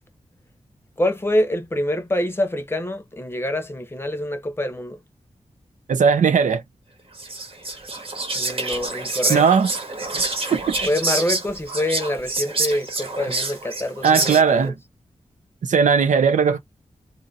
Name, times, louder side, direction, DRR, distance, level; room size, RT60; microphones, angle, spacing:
voice 1, 1.0-5.0 8.3-9.5 10.9-14.7, left 1 dB, 20° left, 0.8 m, -25 dB
voice 2, 5.9-6.6 9.3-9.7 10.5-10.8 14.0-14.7 15.6-16.6, right 6 dB, 90° right, 0.7 m, -17 dB
Whispering, 7.2-14.6, right 2 dB, 50° right, 1.3 m, -27 dB
2.7 x 2.5 x 4.0 m
wide cardioid pair, 120°, 13 cm